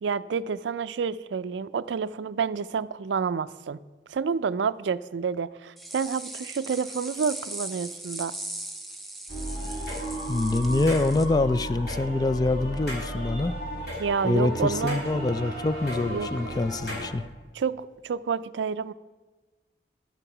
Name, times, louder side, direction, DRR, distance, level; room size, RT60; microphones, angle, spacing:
voice 1, 0.0-3.8 4.1-8.3 14.0-15.0 16.1-16.3 17.6-18.9, right 6 dB, 85° right, 15 dB, 0.4 m, -29 dB
sound 1, 5.8-11.3, right 1 dB, ahead, 0.7 m, -39 dB
sound 2, 9.3-17.1, right 1 dB, 60° left, 5.1 m, -34 dB
voice 2, 10.3-13.5 14.2-17.2, left 2 dB, 20° left, 14 dB, 0.3 m, -25 dB
12.0 x 9.8 x 6.0 m, 1.3 s
head